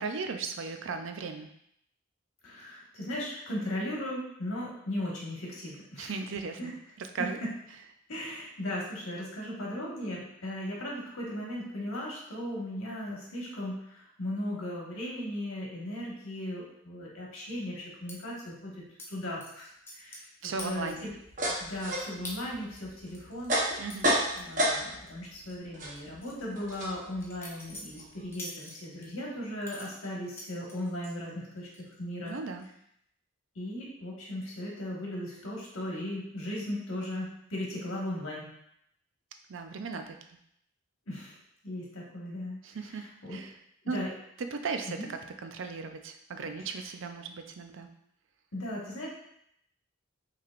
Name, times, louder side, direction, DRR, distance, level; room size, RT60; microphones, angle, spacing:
voice 1, 0.0-1.5 6.0-7.4 20.4-21.1 23.8-24.1 32.2-32.7 39.5-40.4 42.6-43.6 43.9-44.0 44.4-47.9, right 4 dB, 65° right, 6 dB, 0.4 m, -37 dB
voice 2, 2.4-6.1 6.6-6.7 8.1-18.7 19.1-20.2 20.6-21.1 21.6-23.5 24.3-31.7 32.0-32.4 33.5-38.5 41.1-41.3 41.6-42.6 43.2-43.4 43.9-44.1 45.0-45.1 48.5-49.1, left 1 dB, 80° left, -4 dB, 1.5 m, -37 dB
sound 1, 18.1-18.2 19.0-19.1 19.4-20.3 20.6-21.1 21.5-21.6 22.2-22.4 22.8-25.1 25.4-25.5 26.0-29.1 29.6-31.2 31.6-32.0 32.3-32.6, left 1 dB, 10° left, 0.6 m, -45 dB
sound 2, 20.6-25.2 25.4-28.3, equal, 40° right, 0.9 m, -32 dB
5.6 x 3.3 x 2.5 m, 0.73 s
head